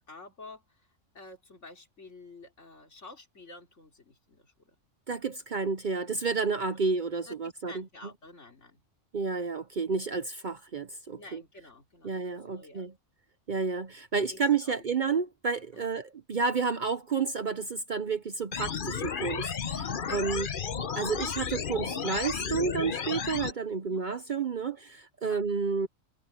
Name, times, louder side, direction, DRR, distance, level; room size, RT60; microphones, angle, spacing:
voice 1, 0.1-4.8 6.6-7.0 7.3-8.8 11.1-12.9 14.2-14.8 15.7-15.9 19.9-20.2 23.8-24.0 25.2-25.4, left 2 dB, 65° left, 3.8 m, -50 dB
voice 2, 5.1-7.8 9.1-11.4 12.0-12.9 13.5-16.0 16.3-20.5 21.0-25.9, right 5 dB, 45° right, 0.8 m, -30 dB
sound 1, 18.5-23.5, left 6 dB, 45° left, 1.0 m, -33 dB
omnidirectional pair, 1.3 m